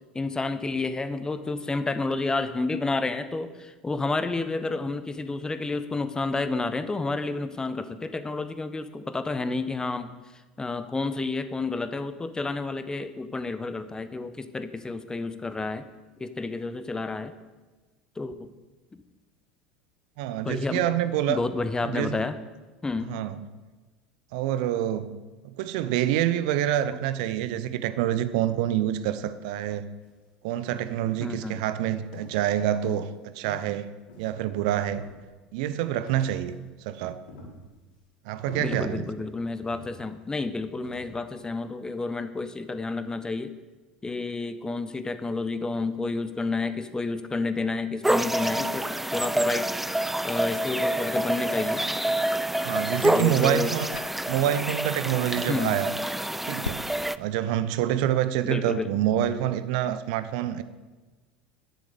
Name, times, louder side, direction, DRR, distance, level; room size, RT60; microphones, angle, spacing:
voice 1, 0.1-10.1 10.6-15.9 16.2-17.3 18.2-18.5 18.9-19.0 20.4-20.8 21.3-22.4 22.8-23.2 31.2-31.6 38.6-43.5 44.0-49.7 50.2-51.8 53.1-53.7 55.3-55.8 58.4-58.9, left 3 dB, 15° left, 1.1 m, -30 dB
voice 2, 20.2-21.4 21.8-22.2 23.0-23.4 24.3-25.2 25.4-29.9 30.4-33.9 34.2-35.0 35.5-37.2 38.2-39.1 52.6-53.9 54.3-55.9 56.4-56.9 57.2-60.6, right 11 dB, 55° right, 0.9 m, -27 dB
sound 1, 30.0-30.2 30.7-31.1 31.4-32.5 32.8-33.1 33.5-34.5 34.8-35.6 36.1-36.7 37.0-38.0 38.5-39.2 39.7-40.4 40.8-41.2, left 2 dB, 65° left, 3.9 m, -49 dB
sound 2, 48.0-57.2, right 1 dB, 5° right, 0.5 m, -27 dB
sound 3, 52.9-54.4 55.6-57.2, left 5 dB, 80° left, 0.5 m, -43 dB
11.5 x 11.0 x 6.9 m
figure-of-eight pair, 70°, 5 cm